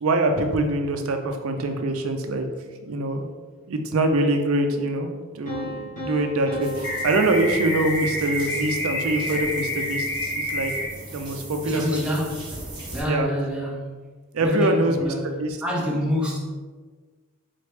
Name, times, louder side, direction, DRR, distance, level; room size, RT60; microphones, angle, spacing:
voice 1, 0.0-2.5 2.9-3.3 3.7-5.1 5.3-10.1 10.4-10.7 11.1-12.3 13.1-13.3 14.3-15.6, right 2 dB, 70° right, 5 dB, 0.5 m, -24 dB
Piano, 5.5-8.3, left 1 dB, 35° left, 1.2 m, -36 dB
sound 1, 6.6-13.0, right 1 dB, 20° right, 1.1 m, -38 dB
sound 2, 6.8-10.8, left 1 dB, 55° left, 0.9 m, -28 dB
voice 2, 11.6-12.5 12.9-13.9 14.4-15.3 15.6-16.4, left 1 dB, 5° right, -4 dB, 0.6 m, -26 dB
4.1 x 3.1 x 3.2 m, 1.4 s
head